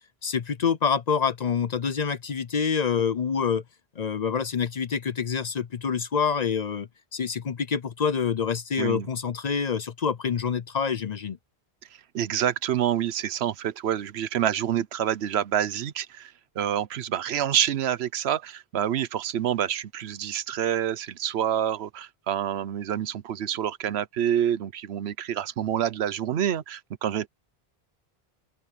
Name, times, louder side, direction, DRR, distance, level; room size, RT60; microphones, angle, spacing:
voice 1, 0.2-3.6 4.0-11.4, left 6 dB, 50° left, 0.7 m, -27 dB
voice 2, 12.1-27.3, right 10 dB, 90° right, 1.0 m, -27 dB
open air
omnidirectional pair, 1.0 m